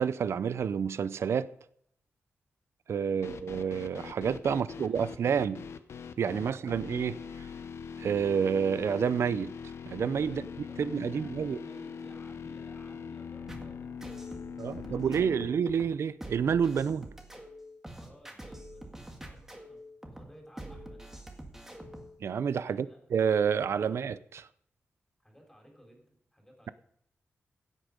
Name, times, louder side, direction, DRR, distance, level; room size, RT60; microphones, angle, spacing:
voice 1, 0.0-1.5 2.9-5.6 6.2-7.2 8.0-9.5 9.9-10.5 10.8-11.6 14.6-17.1 22.2-24.5, right 7 dB, 75° right, 0.5 m, -29 dB
sound 1, 3.2-15.5, left 6 dB, 80° left, 0.8 m, -42 dB
voice 2, 4.5-5.6 6.4-6.7 10.2-15.5 17.9-21.0 22.6-23.0 25.2-26.1 26.3-26.7, equal, 10° left, 3.9 m, -56 dB
sound 2, 13.5-22.2, right 1 dB, 10° right, 1.8 m, -46 dB
16.0 x 8.2 x 5.2 m
wide cardioid pair, 135°, 5 cm